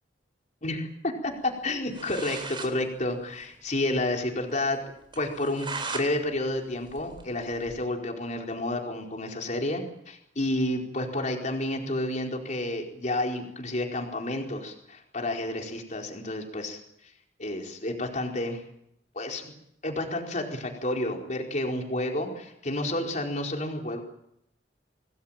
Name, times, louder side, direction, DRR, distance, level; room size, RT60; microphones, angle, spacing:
voice 1, 0.6-4.8 5.2-16.8 17.4-18.6 19.1-19.5 19.8-24.0, left 1 dB, 45° left, 2 dB, 4.5 m, -30 dB
sound 1, 1.7-1.8 1.9-2.7 3.1-3.2 3.4-3.5 3.9-4.0 4.4-4.5 5.1-6.1 6.5-7.8, right 4 dB, 30° right, 4.4 m, -37 dB
27.0 x 20.0 x 8.9 m, 0.77 s
head